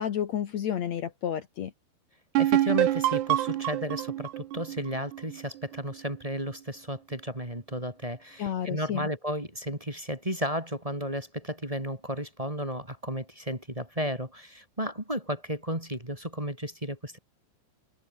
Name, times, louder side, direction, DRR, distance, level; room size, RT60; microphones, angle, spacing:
voice 1, 0.0-1.7 8.4-9.1, left 9 dB, 90° left, 1.5 m, -31 dB
voice 2, 2.4-17.2, equal, 10° right, 3.5 m, -33 dB
sound 1, 2.4-5.9, right 13 dB, 70° right, 3.2 m, -27 dB
omnidirectional pair, 5.6 m